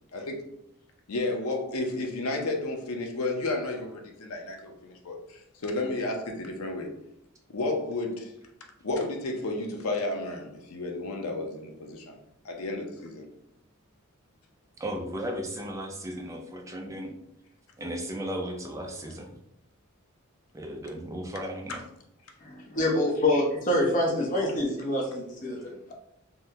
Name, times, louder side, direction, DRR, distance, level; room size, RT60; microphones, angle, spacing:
voice 1, 1.1-6.9 7.5-8.3 8.8-12.2 12.4-13.3, left 2 dB, 85° left, 3 dB, 0.6 m, -32 dB
voice 2, 14.8-17.1 17.8-19.3 20.5-21.8, equal, 15° right, 2 dB, 0.4 m, -35 dB
voice 3, 22.4-25.9, left 1 dB, 35° left, -1 dB, 0.7 m, -26 dB
3.6 x 2.1 x 2.7 m, 0.78 s
head